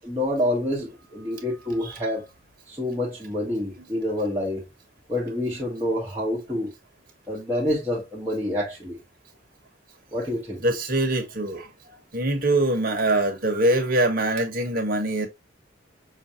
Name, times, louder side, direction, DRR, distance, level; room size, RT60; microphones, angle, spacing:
voice 1, 0.0-2.3 2.7-4.7 5.1-6.7 7.3-9.0 10.1-10.6, left 1 dB, 15° right, 1.5 m, -27 dB
voice 2, 10.6-15.3, right 1 dB, 50° right, 1.5 m, -24 dB
6.1 x 2.8 x 2.9 m
head